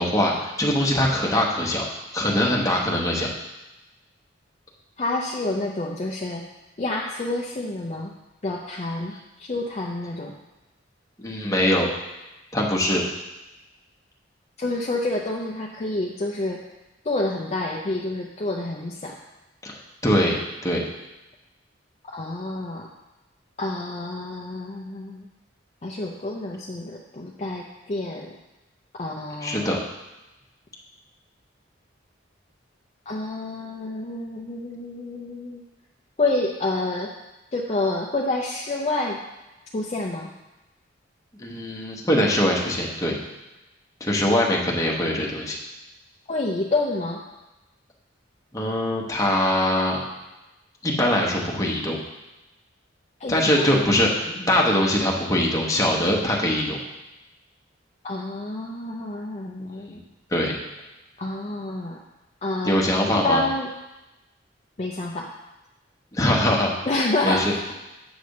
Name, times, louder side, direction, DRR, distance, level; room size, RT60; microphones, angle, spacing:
voice 1, 0.0-1.8 2.1-3.3 11.2-11.9 12.5-13.0 19.6-19.7 20.0-20.4 20.6-20.8 29.4-29.8 41.4-43.2 44.0-45.6 48.5-50.0 50.8-52.0 53.3-56.8 59.9-60.0 60.3-60.5 62.6-63.4 66.1-66.7 67.2-67.5, left 1 dB, 15° left, -2 dB, 1.1 m, -22 dB
voice 2, 5.0-6.5 6.8-8.1 8.4-10.3 14.6-16.6 17.0-19.2 22.1-22.9 23.6-25.3 25.8-28.3 29.0-29.7 33.1-35.6 36.2-37.1 37.5-39.2 39.7-40.3 46.3-47.2 53.2-54.0 54.3-54.5 58.0-60.0 61.2-62.0 62.4-62.8 63.1-63.7 64.8-65.3 66.9-67.7, left 2 dB, 35° left, -2 dB, 0.5 m, -28 dB
8.0 x 3.4 x 6.5 m, 1.0 s
head